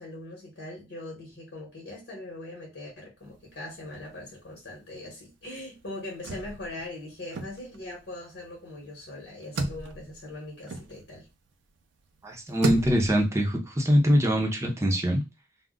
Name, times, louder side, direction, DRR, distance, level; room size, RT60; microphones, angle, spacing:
voice 1, 0.0-11.3, left 2 dB, 60° left, 1.1 m, -41 dB
sound 1, 3.2-4.5 4.7-4.8 5.1-11.5 12.0-13.2, right 2 dB, 70° right, 0.5 m, -35 dB
voice 2, 12.2-15.2, equal, 15° right, 0.6 m, -23 dB
2.3 x 2.1 x 3.6 m
head